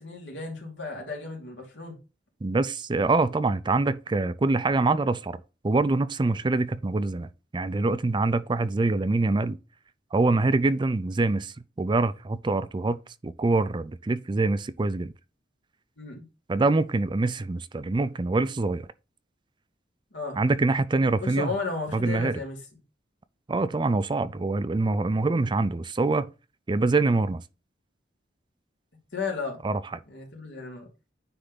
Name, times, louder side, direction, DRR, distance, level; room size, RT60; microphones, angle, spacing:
voice 1, 0.0-2.0 16.0-16.2 20.1-20.4 21.2-22.6 29.1-29.6 30.1-30.9, left 4 dB, 85° left, 2.9 m, -34 dB
voice 2, 2.4-9.6 10.1-15.1 16.5-18.9 20.4-21.5 21.9-22.4 23.5-26.3 26.7-27.4 29.6-30.0, right 3 dB, 25° right, 0.4 m, -25 dB
9.7 x 3.4 x 3.9 m
head